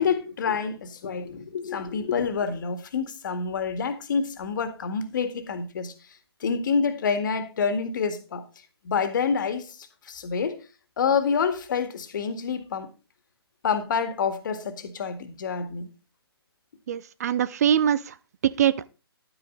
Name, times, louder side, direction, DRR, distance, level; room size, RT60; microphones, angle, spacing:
voice 1, 0.0-5.9 6.4-8.4 8.8-9.8 10.1-10.6 11.0-12.9 13.6-15.9, left 6 dB, 50° left, 2.0 m, -27 dB
voice 2, 16.9-18.1 18.4-18.9, right 9 dB, 40° right, 0.5 m, -23 dB
11.5 x 8.9 x 3.9 m
figure-of-eight pair, 145°, 13 cm